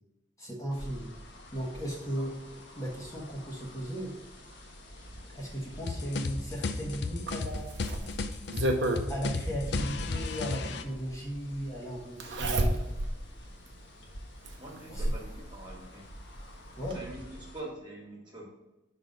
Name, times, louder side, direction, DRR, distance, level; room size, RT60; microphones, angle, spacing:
voice 1, 0.4-1.1 1.5-4.1 5.3-7.7 9.1-12.9 14.9-15.1 16.8-17.0, equal, 15° left, -4 dB, 1.1 m, -36 dB
sound 1, 0.7-17.6, equal, 75° left, 1.4 m, -46 dB
sound 2, 5.9-10.8, left 3 dB, 60° left, 0.5 m, -34 dB
Zipper (clothing), 7.3-9.1 10.5-10.6 12.2-13.2 13.7-13.8 14.4-15.3 16.5-16.6 16.9-17.0, right 1 dB, 70° right, 0.8 m, -30 dB
voice 2, 14.6-16.1 16.9-18.5, right 1 dB, 25° right, -2 dB, 1.6 m, -44 dB
5.8 x 3.9 x 5.2 m, 0.98 s
head